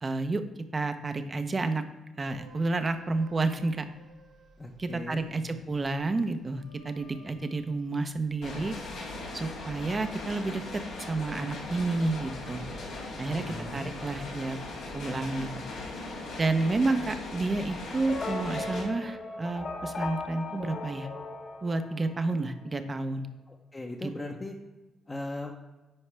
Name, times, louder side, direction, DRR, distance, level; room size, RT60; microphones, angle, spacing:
voice 1, 0.0-0.4 0.7-1.8 2.2-3.9 4.8-8.8 9.3-12.6 13.2-14.6 14.9-15.6 16.4-21.1 21.6-23.3 24.0-24.1, right 3 dB, 30° right, 9 dB, 0.7 m, -30 dB
sound 1, 2.2-8.9 9.3-10.2, right 2 dB, 65° right, 2.1 m, -57 dB
voice 2, 4.6-5.7 13.4-13.9 23.5-24.5 25.1-25.5, left 2 dB, 25° left, -1 dB, 0.8 m, -39 dB
sound 2, 8.4-18.8, left 2 dB, 90° left, 2.3 m, -39 dB
sound 3, 18.1-22.4, left 3 dB, 50° left, 1.7 m, -37 dB
9.8 x 4.8 x 3.3 m, 1.1 s
cardioid pair, 90°, 0 cm